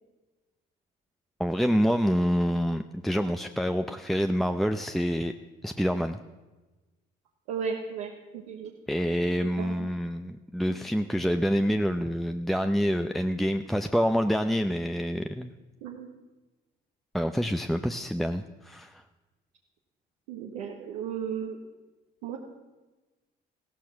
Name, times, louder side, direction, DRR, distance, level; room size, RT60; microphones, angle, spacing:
voice 1, 1.4-5.3 5.6-6.2 8.9-15.5 17.1-19.0, equal, ahead, 7 dB, 0.7 m, -27 dB
voice 2, 7.5-8.7 9.0-9.2 9.6-10.0 10.7-10.8 15.8-16.1 20.3-21.6 22.2-22.4, right 7 dB, 90° right, -1 dB, 1.4 m, -35 dB
15.0 x 14.0 x 5.9 m, 1.2 s
hypercardioid pair, 60°, 21 cm